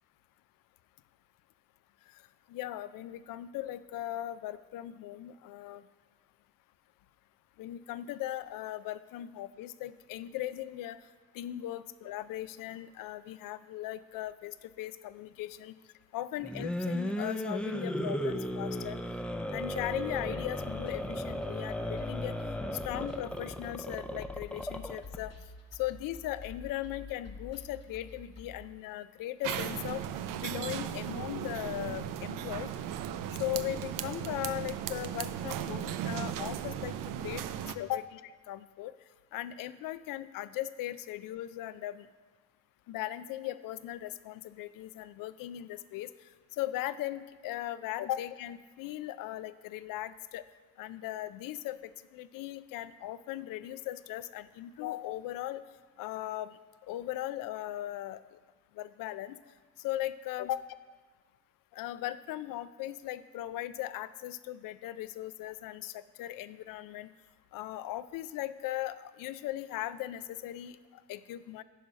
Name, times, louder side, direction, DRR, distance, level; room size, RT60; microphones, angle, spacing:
voice 1, 2.5-5.8 7.6-11.0 11.3-15.7 16.1-19.0 19.5-22.4 22.8-25.3 25.7-30.0 30.4-32.7 33.4-37.4 37.7-38.2 38.5-38.9 39.3-42.1 42.9-46.1 46.6-50.4 50.8-55.6 56.0-56.6 56.9-58.2 58.8-59.4 59.8-60.6 61.7-67.1 67.5-70.8 71.1-71.6, left 14 dB, 80° left, 15 dB, 0.5 m, -38 dB
sound 1, 16.4-25.2, equal, 5° left, 0.4 m, -35 dB
sound 2, 19.7-28.6, left 4 dB, 50° left, 1.2 m, -48 dB
sound 3, 29.4-37.8, right 10 dB, 75° right, 0.6 m, -36 dB
9.3 x 5.6 x 5.1 m, 1.4 s
cardioid pair, 95°, 33 cm